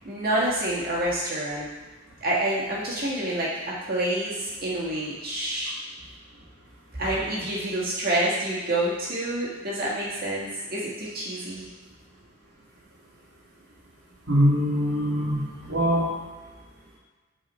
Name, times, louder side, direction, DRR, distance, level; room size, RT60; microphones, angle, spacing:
voice 1, 0.0-1.7 2.2-5.7 7.0-11.7, right 1 dB, 50° right, -6 dB, 1.8 m, -28 dB
voice 2, 14.3-16.2, equal, 75° right, -12 dB, 1.9 m, -23 dB
5.6 x 4.8 x 4.3 m, 1.3 s
head